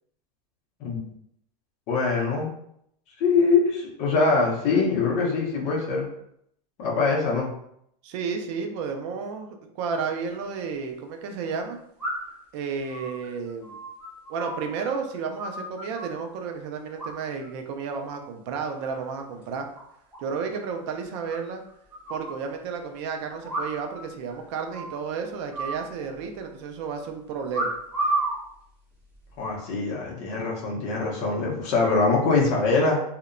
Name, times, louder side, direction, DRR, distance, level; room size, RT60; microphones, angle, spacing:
voice 1, 1.9-2.5 3.2-6.1 6.8-7.5 29.4-33.0, left 4 dB, 30° left, -3 dB, 0.6 m, -23 dB
voice 2, 8.0-11.8 12.5-13.8 14.3-19.7 20.2-21.6 22.1-27.7, right 5 dB, 45° right, 4 dB, 0.4 m, -32 dB
sound 1, 10.2-10.3 12.0-12.4 12.9-14.9 15.1-16.2 17.0-17.5 17.8-18.2 18.6-19.1 19.4-19.5 19.7-19.8 20.1-20.2 20.5-20.6 21.3-22.3 23.4-24.0 24.3-24.4 24.7-25.0 25.5-26.4 27.5-28.4 29.1-29.5, right 2 dB, 5° right, 0.8 m, -32 dB
2.7 x 2.1 x 2.5 m, 0.73 s
supercardioid pair, 160°, 21 cm